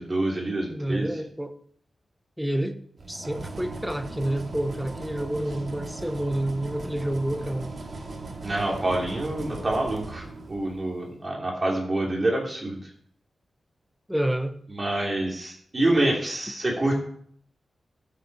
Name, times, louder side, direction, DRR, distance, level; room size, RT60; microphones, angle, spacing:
voice 1, 0.0-1.1 8.4-12.8 14.7-16.9, right 1 dB, 30° right, -1 dB, 3.0 m, -27 dB
voice 2, 0.7-1.5 2.4-2.8 3.1-7.7 14.1-14.5, right 1 dB, ahead, 8 dB, 0.9 m, -29 dB
sound 1, 3.0-10.9, right 2 dB, 45° right, 2.0 m, -38 dB
14.5 x 6.9 x 4.8 m, 0.63 s
wide cardioid pair, 140°, 0 cm